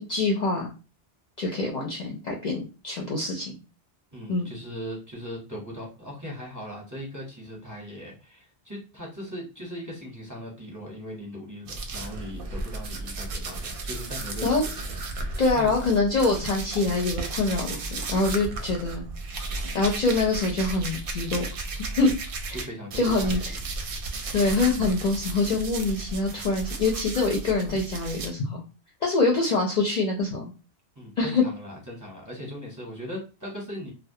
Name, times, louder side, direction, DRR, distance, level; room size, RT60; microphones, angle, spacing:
voice 1, 0.1-0.7 1.4-3.5 4.3-4.5 14.4-14.6 15.4-19.1 19.7-21.4 21.7-22.1 23.0-23.4 24.3-28.6 29.0-30.5 31.2-31.4, left 3 dB, 55° left, -1 dB, 0.5 m, -25 dB
voice 2, 4.1-15.7 22.0-22.1 22.5-23.6 31.0-33.9, equal, 20° right, -3 dB, 0.7 m, -39 dB
sound 1, 11.7-22.6 22.9-28.3, right 3 dB, 65° right, 0.7 m, -34 dB
2.2 x 2.2 x 2.6 m, 0.32 s
omnidirectional pair, 1.1 m